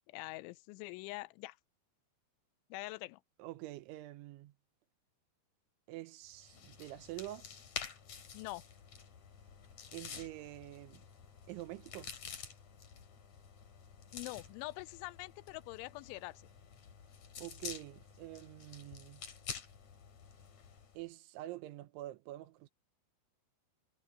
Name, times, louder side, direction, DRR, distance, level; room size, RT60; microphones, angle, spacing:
voice 1, 0.1-1.6 2.7-3.2 8.3-8.6 14.1-16.5, left 21 dB, 90° left, 3.0 m, -44 dB
voice 2, 3.4-4.5 5.9-7.5 9.9-11.0 11.5-12.1 17.4-19.2 20.9-22.7, right 16 dB, 85° right, 3.4 m, -46 dB
sound 1, 6.3-21.0, left 6 dB, 45° left, 3.4 m, -49 dB
omnidirectional pair, 5.3 m